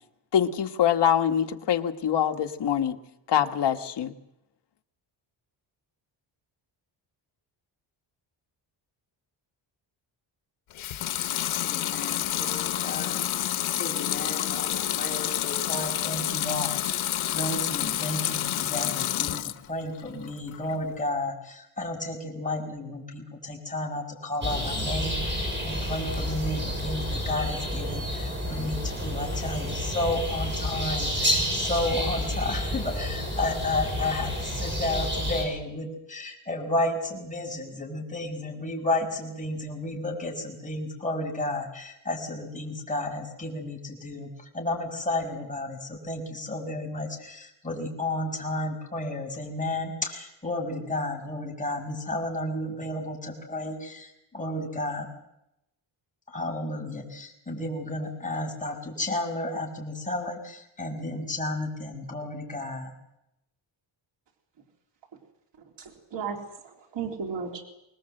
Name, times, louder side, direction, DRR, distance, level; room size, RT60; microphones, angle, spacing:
voice 1, 0.3-3.0 3.3-4.1, left 9 dB, 60° left, 6 dB, 1.6 m, -24 dB
Water tap faucet / Sink (filling or washing) / Liquid, 10.7-19.7 20.1-20.8, left 12 dB, 85° left, 1.1 m, -29 dB
voice 2, 11.6-13.2 13.8-17.1 17.3-19.4 19.7-55.1 56.3-62.9, left 2 dB, 15° left, 0 dB, 5.8 m, -32 dB
sound 1, 24.4-35.4, equal, 25° right, 7.3 m, -30 dB
voice 3, 65.8-67.6, right 6 dB, 65° right, 1 dB, 3.7 m, -35 dB
25.0 x 20.5 x 7.8 m, 0.85 s
wide cardioid pair, 160°, 47 cm